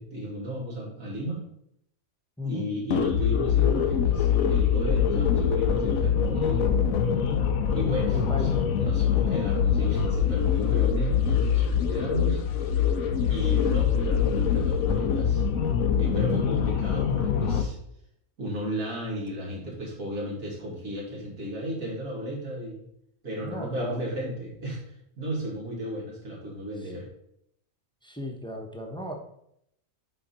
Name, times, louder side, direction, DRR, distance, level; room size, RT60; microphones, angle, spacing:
voice 1, 0.0-1.4 2.4-6.7 7.7-8.5 8.8-12.4 12.8-15.4 16.0-17.8 18.4-22.8 23.2-24.8 25.2-27.1, right 1 dB, 90° right, -4 dB, 2.8 m, -34 dB
sound 1, 2.9-17.6, left 7 dB, 90° left, 1.1 m, -24 dB
voice 2, 8.1-8.6 13.2-13.4 23.4-24.0 28.0-29.1, left 1 dB, 5° left, 2 dB, 0.7 m, -35 dB
8.7 x 3.8 x 4.3 m, 0.74 s
omnidirectional pair, 1.4 m